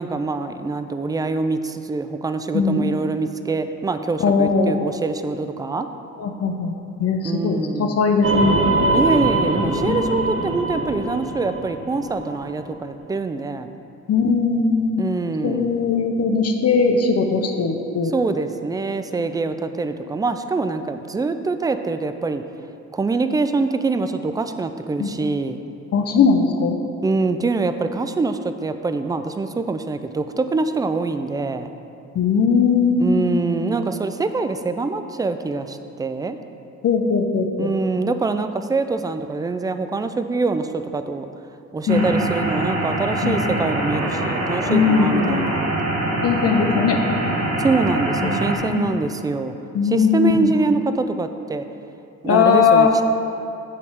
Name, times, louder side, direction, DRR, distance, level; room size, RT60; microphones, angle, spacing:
voice 1, 0.0-5.9 7.2-8.0 8.9-13.7 15.0-15.8 18.1-22.4 22.9-25.6 27.0-31.7 33.0-36.4 37.6-41.3 41.7-45.7 47.6-49.5 49.8-51.6 52.2-53.0, right 3 dB, 15° right, 9 dB, 0.3 m, -24 dB
voice 2, 2.5-2.9 4.2-4.8 6.2-6.7 7.0-8.6 9.6-10.3 14.1-15.0 15.4-18.1 25.0-25.1 25.9-26.8 32.1-33.3 36.8-37.7 41.9-42.1 43.2-43.4 44.7-45.5 46.2-47.0 48.2-48.9 49.7-50.5 52.3-53.0, left 5 dB, 55° left, 4 dB, 0.7 m, -19 dB
sound 1, 8.2-12.6, right 2 dB, 45° right, 1.1 m, -23 dB
sound 2, 41.9-48.6, right 1 dB, 65° right, 1.5 m, -24 dB
8.5 x 3.5 x 6.4 m, 2.8 s
cardioid pair, 90°, 30 cm